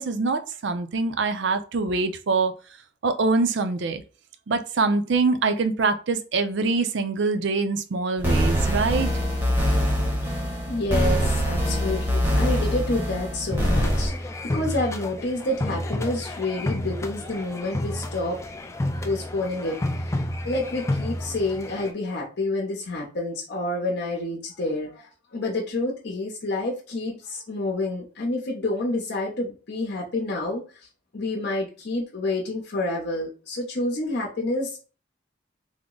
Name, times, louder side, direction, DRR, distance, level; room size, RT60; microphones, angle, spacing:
voice 1, 0.0-2.5 3.0-4.0 4.5-9.1, right 3 dB, 65° right, 9 dB, 0.5 m, -24 dB
sound 1, 8.2-14.1, equal, 10° right, 0.7 m, -24 dB
voice 2, 10.7-18.4 19.0-19.7 20.1-20.2 20.4-30.6 31.1-34.8, left 2 dB, 60° left, -2 dB, 0.8 m, -28 dB
sound 2, 13.5-21.9, left 1 dB, 15° left, 0.3 m, -30 dB
3.5 x 2.0 x 3.7 m, 0.36 s
head